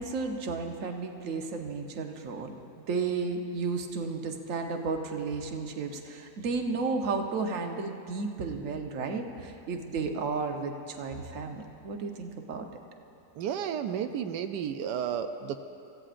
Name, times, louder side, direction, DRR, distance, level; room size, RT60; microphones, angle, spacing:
voice 1, 0.0-12.7, right 4 dB, 55° right, 3 dB, 1.3 m, -33 dB
voice 2, 13.3-15.6, right 8 dB, 85° right, 7 dB, 1.2 m, -32 dB
26.0 x 15.5 x 2.5 m, 2.8 s
omnidirectional pair, 1.8 m